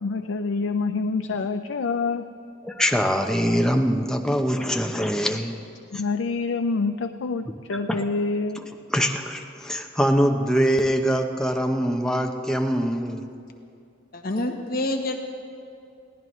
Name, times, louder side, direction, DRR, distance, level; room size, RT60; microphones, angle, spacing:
voice 1, 0.0-2.3 5.9-8.7, left 4 dB, 75° left, 8 dB, 0.4 m, -26 dB
voice 2, 2.6-5.6 7.9-8.0 8.9-13.2, equal, 5° left, 3 dB, 0.7 m, -23 dB
voice 3, 14.1-15.2, left 1 dB, 50° left, 4 dB, 1.0 m, -27 dB
21.5 x 16.0 x 3.2 m, 2.5 s
head